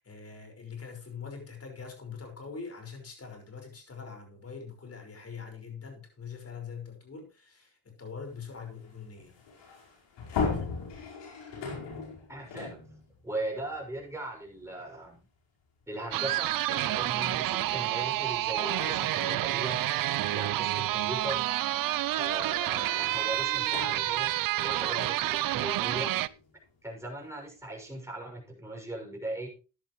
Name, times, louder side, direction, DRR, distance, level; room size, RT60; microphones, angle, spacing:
voice 1, 0.0-9.4 10.4-10.8, left 5 dB, 35° left, 4 dB, 5.5 m, -43 dB
sound 1, 8.3-14.6 15.0-15.2 16.3-16.5 16.9-26.7, left 4 dB, 75° left, 5.0 m, -40 dB
voice 2, 12.3-12.8 13.2-15.2 15.9-19.8 20.3-21.5 22.1-24.3 24.6-26.1 26.8-29.5, right 1 dB, 5° right, -1 dB, 6.5 m, -38 dB
sound 2, 16.1-26.3, right 15 dB, 50° right, 0.5 m, -29 dB
14.5 x 10.5 x 3.2 m, 0.33 s
cardioid pair, 90°, 43 cm